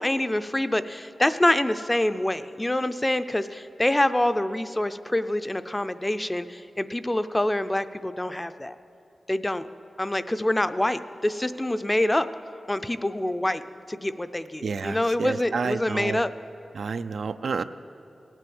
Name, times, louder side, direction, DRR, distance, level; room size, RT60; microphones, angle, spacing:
voice 1, 0.0-8.7 9.3-9.6 10.0-12.3 12.7-13.6 13.9-16.3, left 1 dB, 15° left, 11 dB, 0.5 m, -26 dB
voice 2, 14.6-16.2 16.7-17.6, right 5 dB, 75° right, 10 dB, 0.4 m, -29 dB
18.5 x 9.0 x 7.8 m, 2.9 s
wide cardioid pair, 110°, 0 cm